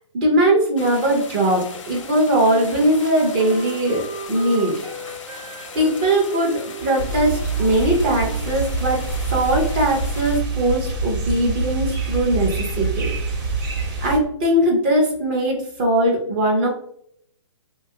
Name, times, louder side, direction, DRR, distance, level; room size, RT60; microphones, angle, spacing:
voice 1, 0.1-4.9 5.2-5.3 5.7-9.0 9.3-13.4 14.0-16.7, right 1 dB, 20° right, -1 dB, 0.4 m, -20 dB
sound 1, 0.8-10.4, left 5 dB, 80° left, 0.6 m, -39 dB
Wind instrument woodwind instrument, 1.9-9.5, right 4 dB, 85° right, 0.6 m, -37 dB
sound 2, 7.0-14.2, right 3 dB, 40° right, 0.8 m, -25 dB
2.9 x 2.2 x 2.7 m, 0.68 s
hypercardioid pair, 160°, 16 cm